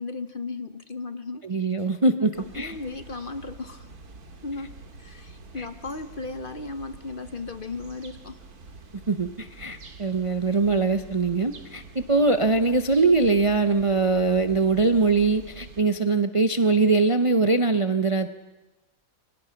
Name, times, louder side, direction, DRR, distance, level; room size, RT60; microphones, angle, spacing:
voice 1, 0.0-1.4 1.8-1.9 2.1-3.9 4.4-4.7 5.0-8.4, left 3 dB, 40° left, 10 dB, 1.0 m, -35 dB
voice 2, 1.4-2.7 5.6-5.7 9.1-18.3, right 3 dB, 30° right, 9 dB, 0.6 m, -22 dB
sound 1, 2.3-15.8, right 3 dB, 80° right, 2.4 m, -46 dB
29.5 x 23.5 x 5.9 m, 1.1 s
omnidirectional pair, 1.6 m